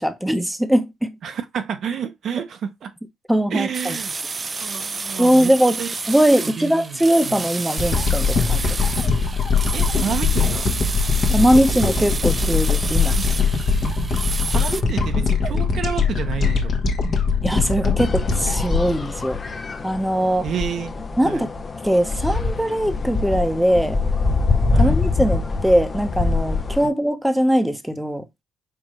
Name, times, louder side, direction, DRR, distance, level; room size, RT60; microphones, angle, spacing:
voice 1, 0.0-1.1 3.3-4.0 5.2-5.8 6.1-8.7 11.3-13.1 17.4-19.4 19.8-20.4 21.2-21.5 21.8-24.0 24.8-28.3, equal, 5° right, 0.8 m, -20 dB
voice 2, 1.2-2.9 3.5-4.1 4.6-5.9 6.4-7.4 9.7-10.7 13.1-13.3 14.5-16.8 20.4-21.0 21.2-21.4 24.7-25.0 26.8-26.9, right 8 dB, 65° right, 0.7 m, -30 dB
sound 1, 3.7-14.8, right 4 dB, 30° right, 0.4 m, -30 dB
sound 2, 7.8-20.1 20.6-20.7, left 5 dB, 50° left, 1.0 m, -21 dB
sound 3, 18.0-26.9, left 3 dB, 35° left, 0.5 m, -24 dB
4.6 x 3.6 x 3.0 m
cardioid pair, 90°, 0 cm